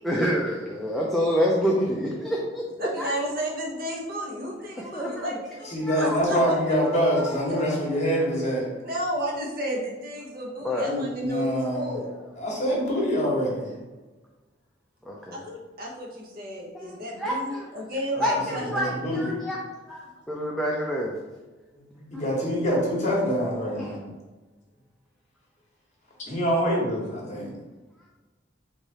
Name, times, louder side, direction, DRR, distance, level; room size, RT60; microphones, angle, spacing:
voice 1, 0.0-2.6 3.0-3.1 4.9-5.4 5.8-6.2 6.8-7.7 8.1-8.2 10.6-10.9 15.1-15.4 16.7-17.7 18.2-19.6 19.9-21.2 22.0-22.2 23.8-24.0, equal, ahead, -4 dB, 0.4 m, -28 dB
voice 2, 2.8-6.6 7.6-7.8 8.8-12.1 15.3-19.2, equal, 50° right, -1 dB, 0.9 m, -32 dB
voice 3, 5.6-8.7 10.8-11.9 12.4-13.7 18.1-19.4 21.7-21.8 22.1-24.1 26.3-27.5, equal, 40° left, -3 dB, 1.3 m, -25 dB
3.5 x 3.4 x 4.1 m, 1.2 s
head